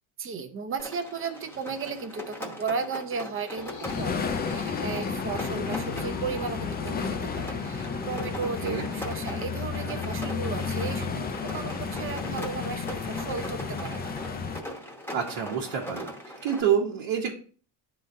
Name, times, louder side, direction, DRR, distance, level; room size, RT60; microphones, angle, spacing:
voice 1, 0.2-3.7 4.0-14.1, right 5 dB, 25° right, 8 dB, 0.6 m, -35 dB
Rain, 0.8-16.6, left 1 dB, 5° left, 0.9 m, -40 dB
sound 1, 3.4-8.2, left 5 dB, 90° left, 1.7 m, -41 dB
sound 2, 3.8-14.6, left 5 dB, 20° left, 0.3 m, -32 dB
voice 2, 15.1-16.1 16.4-17.3, right 8 dB, 65° right, -3 dB, 1.1 m, -27 dB
11.0 x 3.9 x 2.6 m, 0.42 s
cardioid pair, 135°, 48 cm